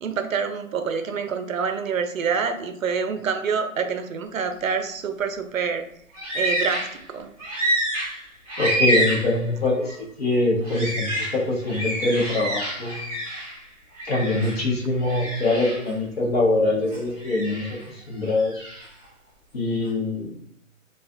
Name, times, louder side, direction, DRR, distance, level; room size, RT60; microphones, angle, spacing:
voice 1, 0.0-5.8 6.3-7.3, right 6 dB, 70° right, 7 dB, 0.5 m, -27 dB
sound 1, 6.1-7.0 7.4-9.4 9.8-10.0 10.6-13.6 14.0-14.7 15.0-15.9 16.9-17.9 18.3-18.9, right 1 dB, 25° right, 1.2 m, -27 dB
voice 2, 8.6-13.0 14.1-17.8 18.1-18.6 19.5-20.4, left 2 dB, 45° left, -3 dB, 0.9 m, -23 dB
3.1 x 2.4 x 2.5 m, 0.67 s
hypercardioid pair, 165°, 42 cm